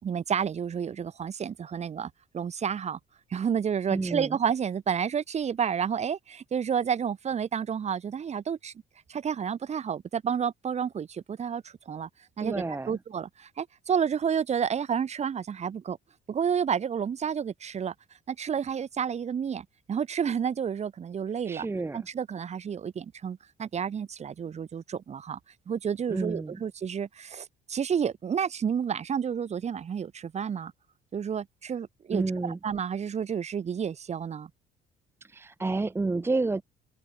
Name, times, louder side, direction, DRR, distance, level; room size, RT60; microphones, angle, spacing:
voice 1, 0.0-3.0 3.3-8.7 9.1-12.1 12.4-16.0 16.3-17.9 18.3-21.7 21.9-25.4 25.7-30.7 31.1-34.5, right 7 dB, 40° right, 3.5 m, -30 dB
voice 2, 3.9-4.4 12.4-13.0 21.4-22.0 26.1-26.6 32.1-32.6 35.2-36.6, right 3 dB, 15° right, 0.7 m, -30 dB
cardioid pair, 110°, 17 cm